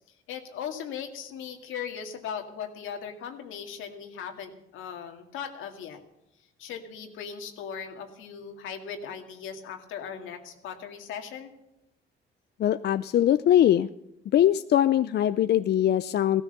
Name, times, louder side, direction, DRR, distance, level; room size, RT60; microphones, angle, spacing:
voice 1, 0.3-6.0 6.6-11.5, left 7 dB, 90° left, 5 dB, 2.1 m, -38 dB
voice 2, 12.6-13.9 14.3-16.4, left 11 dB, 55° left, 13 dB, 0.5 m, -22 dB
16.0 x 13.5 x 6.7 m, 0.87 s
cardioid pair, 90°, 20 cm